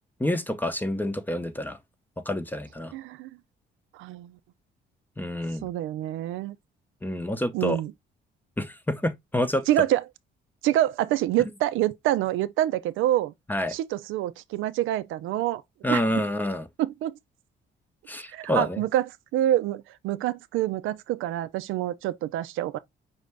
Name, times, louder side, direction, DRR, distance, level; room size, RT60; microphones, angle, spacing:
voice 1, 0.2-1.8 2.3-2.9 5.2-5.7 7.0-7.8 8.6-9.7 13.5-13.7 15.8-16.7 18.1-18.8, left 1 dB, 10° left, 0.7 m, -28 dB
voice 2, 2.9-3.3 4.0-4.4 5.6-6.6 7.5-7.9 9.7-10.0 10.6-13.3 13.7-15.6 15.9-16.2 16.8-17.1 18.3-19.0 19.3-22.8, right 13 dB, 90° right, 0.4 m, -26 dB
5.5 x 2.6 x 3.3 m
cardioid pair, 90°, 20 cm